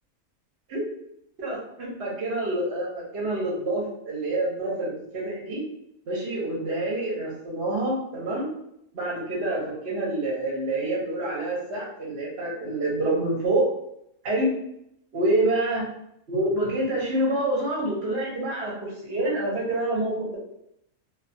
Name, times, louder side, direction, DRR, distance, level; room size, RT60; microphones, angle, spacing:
voice 1, 1.4-5.6 6.1-8.5 8.9-13.7 14.2-14.5 15.1-15.8 16.3-20.4, right 1 dB, 55° right, -3 dB, 0.9 m, -27 dB
2.2 x 2.2 x 2.6 m, 0.75 s
omnidirectional pair, 1.4 m